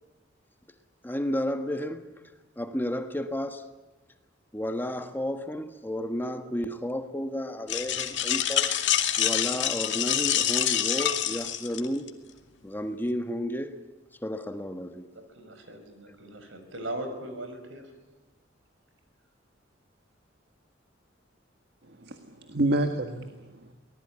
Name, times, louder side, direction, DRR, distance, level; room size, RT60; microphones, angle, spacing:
voice 1, 1.0-2.1 2.6-3.6 4.5-8.7 9.2-12.1 12.6-13.8 14.2-15.1, equal, 10° left, 1.3 m, -32 dB
sound 1, 7.7-12.1, left 10 dB, 65° left, 2.2 m, -26 dB
voice 2, 15.1-17.9, right 1 dB, 75° right, 5.4 m, -39 dB
voice 3, 21.9-23.7, right 1 dB, 60° right, 1.7 m, -29 dB
24.0 x 19.0 x 9.9 m
head